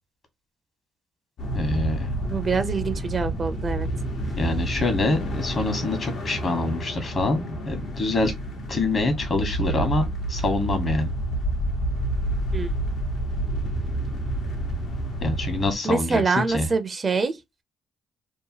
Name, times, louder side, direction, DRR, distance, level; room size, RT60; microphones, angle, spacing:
sound 1, 1.4-15.7, right 1 dB, 75° left, 1.0 m, -29 dB
voice 1, 1.5-2.1 4.4-8.3 8.7-11.1 15.2-16.7, left 2 dB, 45° left, 1.1 m, -25 dB
voice 2, 2.2-3.9 12.5-12.7 15.8-17.3, right 4 dB, 40° right, 0.5 m, -25 dB
2.8 x 2.2 x 2.7 m
supercardioid pair, 70°, 0 cm